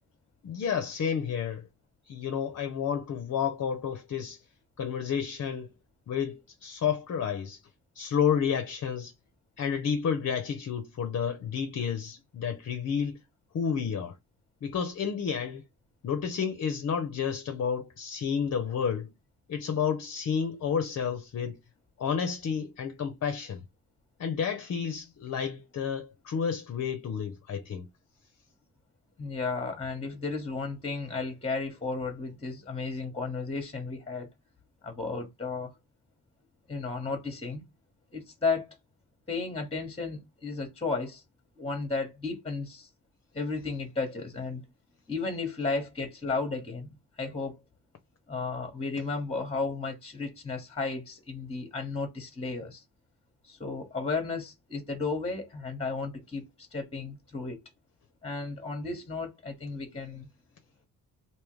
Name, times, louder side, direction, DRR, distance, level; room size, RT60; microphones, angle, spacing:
voice 1, 0.4-1.7 2.1-4.4 4.8-5.7 6.1-7.6 8.0-9.1 9.6-13.2 13.5-14.2 14.6-15.6 16.0-19.1 19.5-21.6 22.0-23.6 24.2-27.9, left 7 dB, 50° left, 0.7 m, -30 dB
voice 2, 29.2-34.3 34.8-35.7 36.7-37.6 38.1-38.7 39.3-41.2 41.6-42.9 43.3-44.6 45.1-46.9 47.2-47.6 48.3-52.8 53.4-56.5 56.7-57.6 58.2-60.3, left 4 dB, 15° left, 1.1 m, -33 dB
3.4 x 2.8 x 3.1 m
cardioid pair, 130°, 35 cm